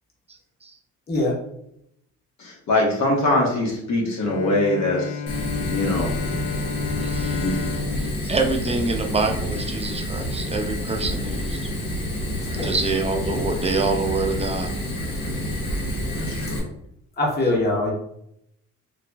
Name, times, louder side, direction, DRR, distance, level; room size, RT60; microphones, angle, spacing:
voice 1, 1.1-1.4 12.4-12.7 17.1-17.9, left 2 dB, 35° left, -2 dB, 1.0 m, -23 dB
voice 2, 2.4-5.2 5.7-6.2 7.3-7.6 16.2-16.6, left 2 dB, 65° left, -1 dB, 1.1 m, -23 dB
Bowed string instrument, 4.2-9.7, left 6 dB, 50° left, 0.4 m, -32 dB
Fire, 5.3-16.6, equal, 90° left, 1.0 m, -28 dB
voice 3, 7.0-7.7 8.0-11.7 12.6-14.7, right 3 dB, 20° right, 3 dB, 0.6 m, -26 dB
4.0 x 2.9 x 2.2 m, 0.75 s
cardioid pair, 90°, 30 cm